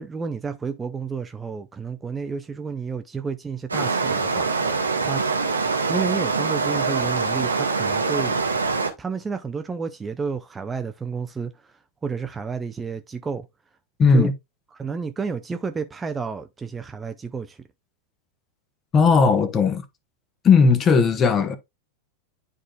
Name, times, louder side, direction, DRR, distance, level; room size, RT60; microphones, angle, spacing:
voice 1, 0.0-5.2 5.9-8.4 9.0-13.5 14.1-14.3 14.7-17.6, right 5 dB, 15° right, 0.5 m, -31 dB
sound 1, 3.7-8.9, right 4 dB, 80° right, 1.0 m, -24 dB
voice 2, 14.0-14.3 18.9-19.8 20.4-21.6, left 5 dB, 25° left, 1.0 m, -17 dB
11.0 x 3.8 x 2.3 m
figure-of-eight pair, 90°, 0 cm